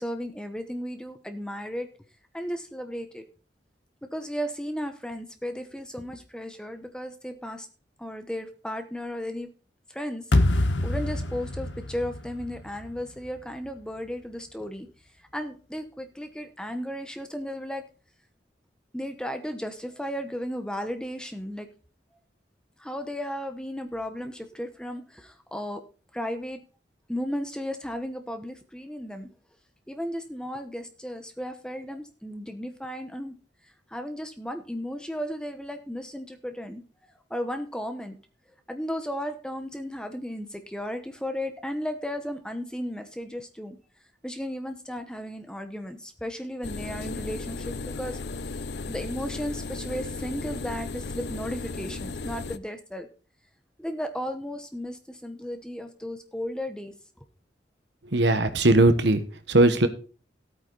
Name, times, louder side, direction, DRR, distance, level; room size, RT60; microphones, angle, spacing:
voice 1, 0.0-1.9 2.3-3.2 4.1-7.7 8.0-9.5 9.9-10.3 10.5-14.9 15.3-17.8 18.9-21.7 22.8-25.8 26.1-26.6 27.1-29.3 29.9-33.4 33.9-36.8 37.3-38.2 38.7-43.8 44.2-48.2 48.9-53.1 53.8-56.9, equal, 5° left, 7 dB, 1.0 m, -34 dB
Cinematic bass hit, 10.3-13.4, left 1 dB, 85° left, 1.2 m, -26 dB
sound 1, 46.6-52.6, left 3 dB, 65° left, 0.6 m, -35 dB
voice 2, 58.0-59.9, right 2 dB, 75° right, 10 dB, 1.3 m, -20 dB
14.5 x 8.7 x 4.0 m, 0.38 s
head